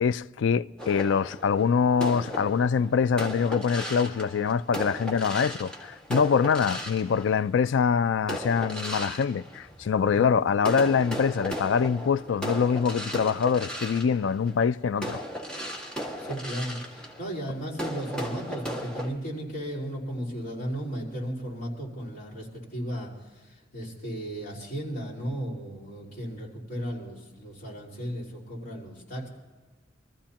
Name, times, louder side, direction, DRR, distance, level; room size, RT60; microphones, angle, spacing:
voice 1, 0.0-5.7 6.1-15.2, left 6 dB, 75° left, 0.4 m, -24 dB
sound 1, 0.8-7.7 8.2-10.2 10.6-19.1, equal, 5° left, 1.8 m, -36 dB
voice 2, 16.2-29.3, equal, 50° left, 4.7 m, -35 dB
24.5 x 14.0 x 2.9 m
head